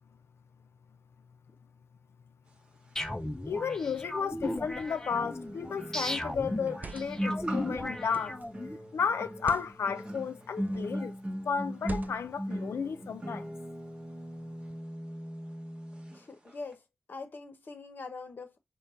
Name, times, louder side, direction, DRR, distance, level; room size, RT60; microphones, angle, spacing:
sound 1, 3.0-8.8, left 1 dB, 15° left, 0.5 m, -36 dB
voice 1, 3.5-8.4 8.9-11.2 11.5-13.5, left 6 dB, 80° left, 0.4 m, -33 dB
sound 2, 3.7-3.8 5.1-16.2 16.4-16.7, equal, 20° right, 1.0 m, -39 dB
sound 3, 5.4-5.7 6.6-7.3 8.1-8.5 9.3-9.7 10.6-11.0 11.8-12.4, right 4 dB, 40° right, 0.3 m, -43 dB
voice 2, 16.1-16.8 17.1-18.6, left 3 dB, 50° left, 0.9 m, -43 dB
5.2 x 2.2 x 4.2 m
wide cardioid pair, 155°, 4 cm